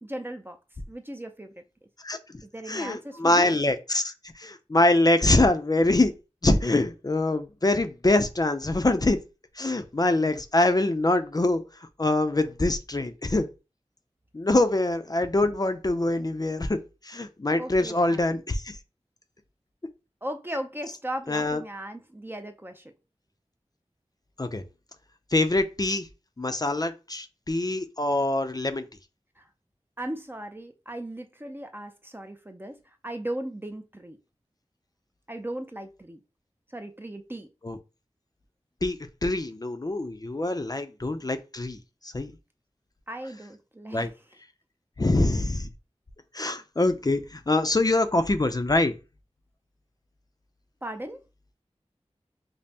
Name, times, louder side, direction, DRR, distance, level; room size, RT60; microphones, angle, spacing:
voice 1, 0.0-0.6 0.9-1.5 2.4-3.5 17.6-18.4 20.2-22.9 29.4-29.5 30.0-32.8 33.0-34.2 35.3-36.2 36.7-37.5 43.1-44.1 50.8-51.2, right 1 dB, 20° right, 0.5 m, -37 dB
voice 2, 2.7-6.1 6.4-9.2 9.6-11.6 12.0-13.5 14.3-16.8 17.0-18.8 21.3-21.6 24.4-24.6 25.3-26.1 26.4-28.8 37.6-37.8 38.8-41.8 42.1-42.3 43.9-44.1 45.0-45.7 46.3-48.9, left 2 dB, 35° left, 0.5 m, -24 dB
5.2 x 2.0 x 2.8 m
wide cardioid pair, 60°, 11 cm